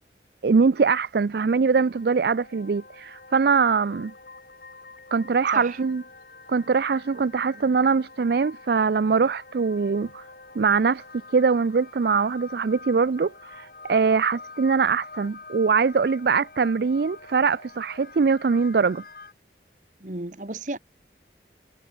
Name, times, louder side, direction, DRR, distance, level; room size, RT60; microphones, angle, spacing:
voice 1, 0.4-4.1 5.1-6.0 6.5-10.2 10.6-11.0 11.3-19.0, right 5 dB, 60° right, 0.4 m, -22 dB
sound 1, 1.2-19.3, left 3 dB, 55° left, 5.3 m, -46 dB
voice 2, 20.0-20.8, right 2 dB, 45° right, 1.5 m, -33 dB
head